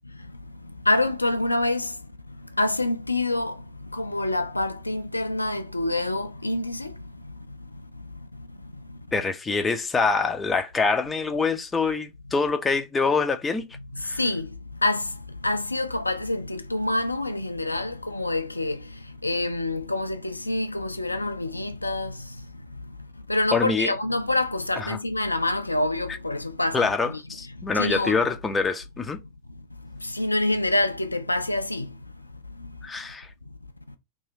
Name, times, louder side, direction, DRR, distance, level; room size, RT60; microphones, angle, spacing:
voice 1, 0.9-1.9 2.6-3.6 3.9-6.9 13.9-14.5 14.8-15.1 15.4-18.8 19.2-22.2 23.3-27.2 27.7-28.3 30.0-31.9, left 2 dB, 85° left, 0.3 m, -26 dB
voice 2, 9.1-13.6 14.1-14.2 23.5-23.9 24.8-25.0 26.7-29.2 32.8-33.3, left 4 dB, 15° left, 0.4 m, -25 dB
3.0 x 2.7 x 2.7 m
figure-of-eight pair, 90°, 0 cm